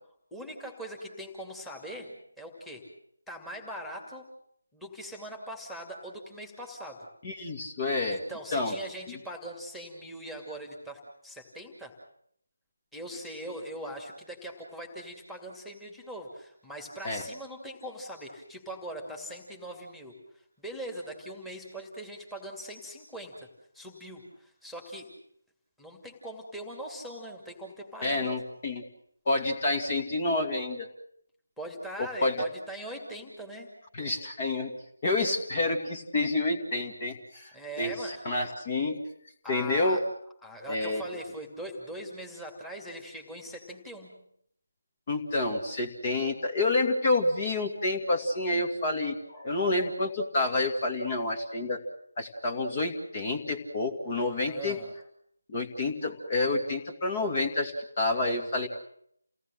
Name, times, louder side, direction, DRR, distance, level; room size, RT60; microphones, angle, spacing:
voice 1, 0.3-2.9 3.3-4.3 4.7-7.1 8.1-12.0 12.9-23.5 23.7-25.1 25.8-28.3 31.6-33.8 37.5-38.2 39.4-40.0 40.4-44.2 54.5-54.9, right 1 dB, ahead, 3 dB, 2.5 m, -41 dB
voice 2, 7.2-8.2 8.5-8.7 17.0-17.2 28.0-28.8 29.3-30.9 32.0-32.3 33.9-34.7 35.0-39.0 39.5-40.0 40.7-41.0 45.1-51.8 52.2-54.8 55.5-58.7, left 2 dB, 30° left, 4 dB, 2.4 m, -29 dB
29.0 x 18.0 x 7.9 m, 0.70 s
figure-of-eight pair, 155°, 0 cm